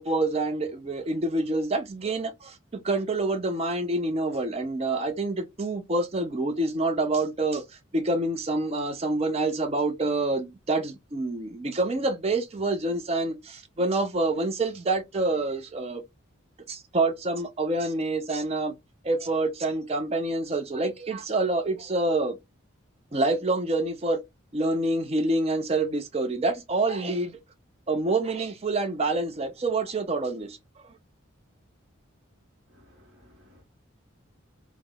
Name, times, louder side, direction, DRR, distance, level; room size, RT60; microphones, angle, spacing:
voice 1, 0.0-2.6 2.8-7.6 7.9-16.0 16.7-18.7 19.0-22.4 23.1-24.2 24.5-27.3 27.9-30.6, right 2 dB, 30° right, 0.4 m, -27 dB
voice 2, 32.7-33.6, left 1 dB, 50° right, 1.0 m, -57 dB
3.3 x 2.0 x 2.2 m
head